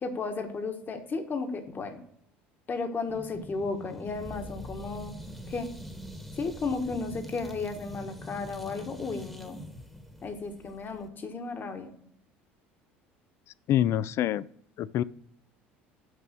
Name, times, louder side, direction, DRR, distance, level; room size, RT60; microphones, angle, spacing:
voice 1, 0.0-2.0 2.7-5.1 5.5-5.7 6.4-9.6 10.2-11.9, left 4 dB, 35° left, 5 dB, 1.3 m, -34 dB
sound 1, 3.1-11.1, equal, ahead, 1.2 m, -44 dB
voice 2, 13.7-14.4 14.8-15.0, left 11 dB, 50° left, 20 dB, 0.3 m, -25 dB
6.2 x 5.3 x 6.3 m, 0.66 s
hypercardioid pair, 70°, 6 cm